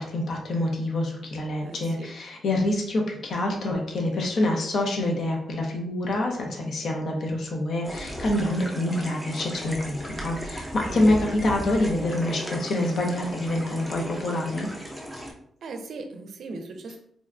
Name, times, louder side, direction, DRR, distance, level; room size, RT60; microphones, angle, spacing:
voice 1, 0.0-14.7, left 1 dB, 55° left, 1 dB, 0.6 m, -26 dB
voice 2, 1.6-2.1 10.9-11.3 15.6-17.0, right 3 dB, 65° right, 5 dB, 0.4 m, -38 dB
sound 1, 7.8-15.3, equal, ahead, 0.5 m, -36 dB
3.7 x 2.2 x 2.4 m, 0.68 s
wide cardioid pair, 135°, 0 cm